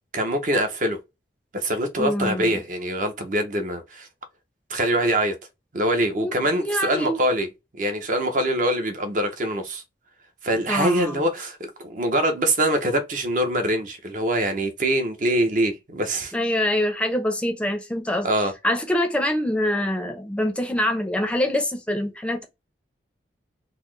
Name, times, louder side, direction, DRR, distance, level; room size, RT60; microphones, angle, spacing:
voice 1, 0.1-1.0 1.5-4.1 4.7-5.4 5.7-7.5 7.8-9.8 10.4-16.3 18.2-18.5, right 1 dB, 45° right, 0.6 m, -24 dB
voice 2, 2.0-2.6 6.2-7.2 10.7-11.2 16.3-18.3 18.6-22.4, left 1 dB, 5° left, 0.5 m, -25 dB
3.9 x 2.0 x 3.1 m
head